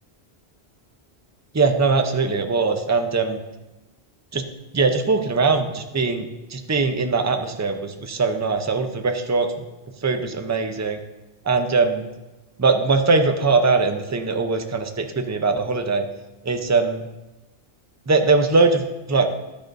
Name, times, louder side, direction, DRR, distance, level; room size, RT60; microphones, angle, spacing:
voice 1, 1.5-3.4 4.3-4.4 4.7-9.5 10.0-11.0 11.4-12.0 12.6-16.1 16.4-17.0 18.1-19.3, right 4 dB, 20° right, 6 dB, 0.6 m, -21 dB
12.0 x 10.0 x 2.6 m, 1.0 s
omnidirectional pair, 1.1 m